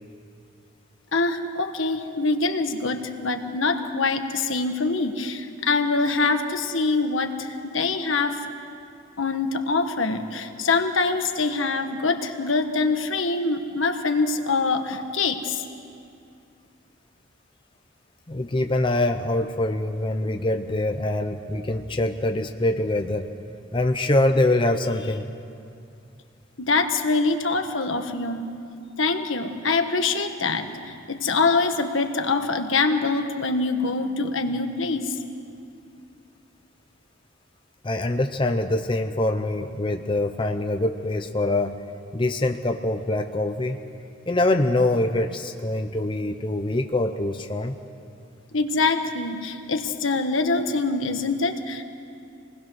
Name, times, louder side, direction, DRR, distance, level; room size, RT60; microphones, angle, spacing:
voice 1, 1.1-8.4 9.2-15.7 26.6-28.5 29.0-35.2 48.5-51.8, left 3 dB, 80° left, 6 dB, 1.4 m, -24 dB
voice 2, 18.3-23.3 23.7-25.3 37.8-41.7 42.1-43.8 44.3-47.8, left 2 dB, 25° left, 5 dB, 0.7 m, -24 dB
27.0 x 20.0 x 6.3 m, 2.4 s
head